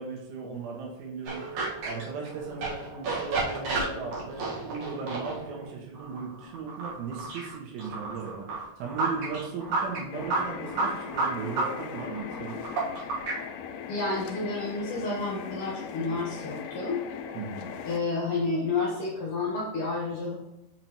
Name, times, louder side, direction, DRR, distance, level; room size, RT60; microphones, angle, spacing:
voice 1, 0.0-1.4 1.8-12.6 17.3-17.7, right 5 dB, 80° right, -1 dB, 4.0 m, -37 dB
sound 1, 1.3-13.4, right 3 dB, 55° right, 2.4 m, -32 dB
sound 2, 10.1-18.0, left 7 dB, 85° left, 2.3 m, -39 dB
voice 2, 13.9-17.0 17.8-20.4, left 3 dB, 60° left, -4 dB, 2.3 m, -30 dB
7.5 x 6.0 x 3.1 m, 0.94 s
omnidirectional pair, 5.4 m